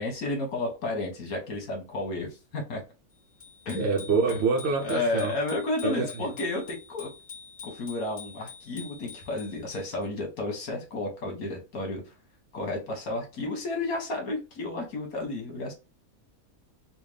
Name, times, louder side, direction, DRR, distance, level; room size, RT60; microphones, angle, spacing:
voice 1, 0.0-2.8 3.6-3.9 4.3-4.4 4.8-7.1 7.6-12.1 12.5-15.7, left 2 dB, 80° left, 1.6 m, -32 dB
Bicycle bell, 3.4-10.1, left 6 dB, 45° left, 2.0 m, -46 dB
voice 2, 3.7-5.4 5.8-6.1, right 4 dB, 60° right, 0.7 m, -26 dB
4.2 x 2.3 x 3.3 m
omnidirectional pair, 1.5 m